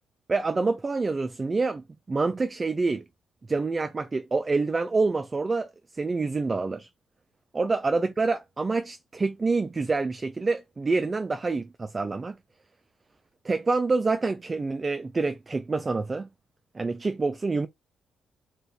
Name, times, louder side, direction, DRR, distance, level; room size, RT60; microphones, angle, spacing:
voice 1, 0.3-3.0 3.5-6.9 7.5-12.4 13.4-16.3 16.7-17.7, right 3 dB, 25° right, 0.4 m, -27 dB
2.8 x 2.6 x 3.3 m
cardioid pair, 90°, 0 cm